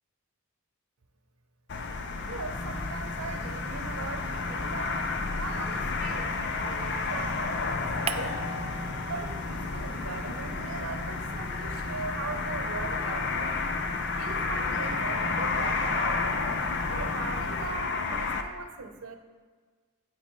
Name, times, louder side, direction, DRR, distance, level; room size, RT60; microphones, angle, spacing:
sound 1, 1.7-18.4, left 4 dB, 55° left, 0.6 m, -31 dB
voice 1, 2.2-13.7 14.2-16.3 16.9-19.1, right 4 dB, 90° right, 7 dB, 0.8 m, -40 dB
sound 2, 2.5-17.7, left 1 dB, 30° left, 0.9 m, -40 dB
sound 3, 8.1-9.7 10.0-12.5, right 5 dB, 30° right, 0.3 m, -41 dB
9.7 x 7.7 x 3.2 m, 1.5 s
head